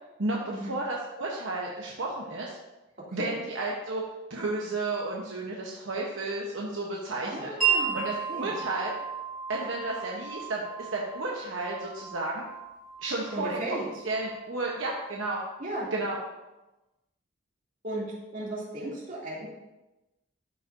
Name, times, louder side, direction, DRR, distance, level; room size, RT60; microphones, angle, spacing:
voice 1, 0.2-2.5 3.1-4.0 4.3-8.9 9.5-12.4 13.0-13.6 14.0-15.4 15.9-16.2, right 2 dB, 75° right, -2 dB, 1.0 m, -32 dB
voice 2, 7.2-8.0 8.3-8.5 13.3-13.8 15.6-15.9 17.8-18.0 18.3-19.5, right 1 dB, 45° right, -6 dB, 2.7 m, -35 dB
Wind chime, 7.6-15.2, right 7 dB, ahead, 2.3 m, -34 dB
12.5 x 5.5 x 2.7 m, 1.0 s
head